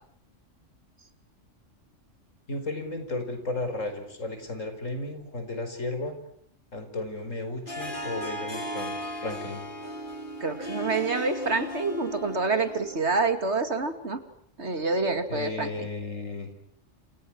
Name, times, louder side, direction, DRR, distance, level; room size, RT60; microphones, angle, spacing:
voice 1, 2.5-6.2 6.7-9.7 15.3-16.5, left 2 dB, 85° left, 7 dB, 5.2 m, -34 dB
Harp, 7.7-13.1, equal, 40° left, 5.2 m, -36 dB
voice 2, 10.4-14.2 14.6-15.7, right 3 dB, 60° right, 8 dB, 2.7 m, -27 dB
30.0 x 28.0 x 6.2 m, 0.65 s
omnidirectional pair, 1.3 m